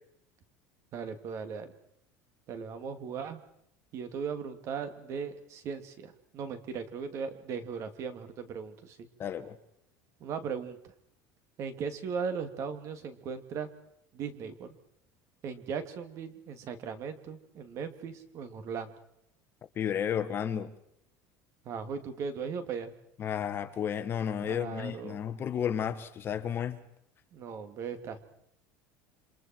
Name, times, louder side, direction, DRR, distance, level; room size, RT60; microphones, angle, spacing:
voice 1, 0.9-1.7 2.5-3.4 3.9-9.0 10.2-10.8 11.6-13.7 14.1-14.7 15.4-18.9 21.6-22.9 24.4-25.2 27.3-28.2, right 6 dB, 45° right, 8 dB, 2.9 m, -38 dB
voice 2, 9.2-9.6 19.7-20.7 23.2-26.8, left 8 dB, 35° left, 10 dB, 1.6 m, -32 dB
28.5 x 26.5 x 4.7 m, 0.76 s
cardioid pair, 140°, 7 cm